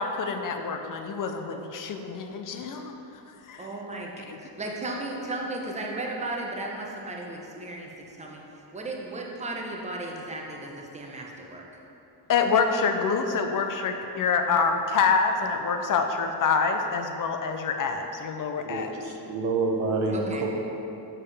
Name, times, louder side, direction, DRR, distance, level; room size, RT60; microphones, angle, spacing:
voice 1, 0.0-2.9 3.5-3.7 4.3-4.4 12.3-18.9, left 5 dB, 50° left, 5 dB, 0.5 m, -26 dB
voice 2, 3.6-4.1 4.4-8.4 8.7-11.6 20.1-20.5, right 2 dB, 15° right, -1 dB, 0.7 m, -35 dB
voice 3, 18.6-20.5, right 3 dB, 90° right, 0 dB, 1.1 m, -28 dB
7.3 x 6.6 x 3.3 m, 2.9 s
wide cardioid pair, 165°, 42 cm